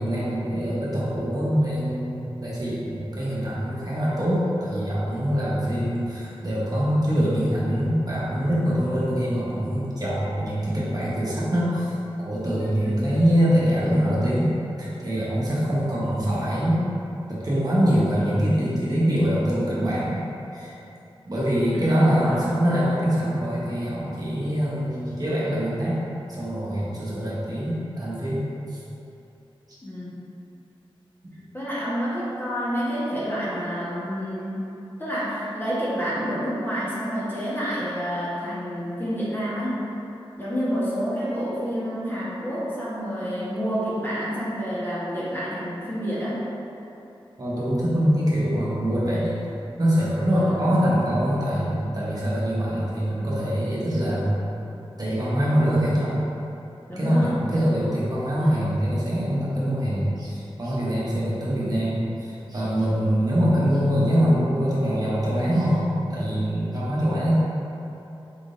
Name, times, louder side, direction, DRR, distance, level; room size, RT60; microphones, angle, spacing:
voice 1, 0.0-11.9 12.2-14.5 14.8-16.8 17.3-20.2 20.5-20.8 21.3-25.9 26.3-28.4 28.7-28.8 47.4-49.3 49.8-54.4 55.0-56.2 57.0-67.3, equal, 40° right, -8 dB, 1.0 m, -24 dB
voice 2, 21.7-22.4 29.8-30.2 31.5-34.6 35.0-39.8 40.4-46.4 50.4-50.6 56.9-57.4 58.4-58.7, equal, 20° left, -9 dB, 1.1 m, -29 dB
4.6 x 3.6 x 2.6 m, 2.9 s
wide cardioid pair, 80°, 10 cm